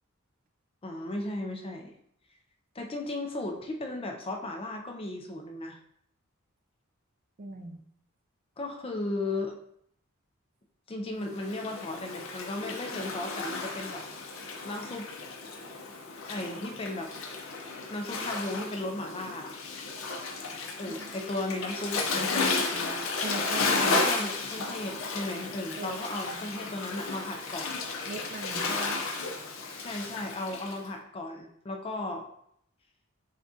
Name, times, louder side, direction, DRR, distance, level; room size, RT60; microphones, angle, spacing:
voice 1, 0.8-1.9 2.7-5.8 8.6-9.6 10.9-14.1 14.6-15.1 16.3-17.1 17.9-19.5 20.8-23.1 23.8-27.7 29.8-32.3, left 2 dB, 25° left, 2 dB, 0.5 m, -35 dB
voice 2, 7.4-7.8 21.0-21.1 23.2-24.0 25.8-26.4 28.1-29.0, right 2 dB, 40° right, 6 dB, 0.4 m, -40 dB
Waves surf, 11.3-30.8, left 3 dB, 70° left, 0.6 m, -33 dB
6.3 x 2.3 x 2.7 m, 0.70 s
head